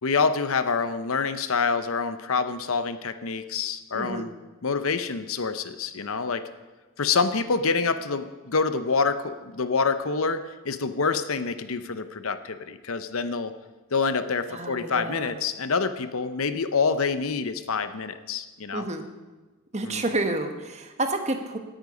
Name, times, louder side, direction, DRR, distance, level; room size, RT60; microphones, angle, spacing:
voice 1, 0.0-4.3 4.6-6.5 7.0-13.5 13.9-18.9 19.8-20.0, left 4 dB, 70° left, 11 dB, 0.8 m, -26 dB
voice 2, 3.9-4.3 14.5-15.3 18.7-19.1 19.7-21.6, right 2 dB, 30° right, 6 dB, 1.3 m, -29 dB
18.0 x 9.0 x 5.1 m, 1.2 s
head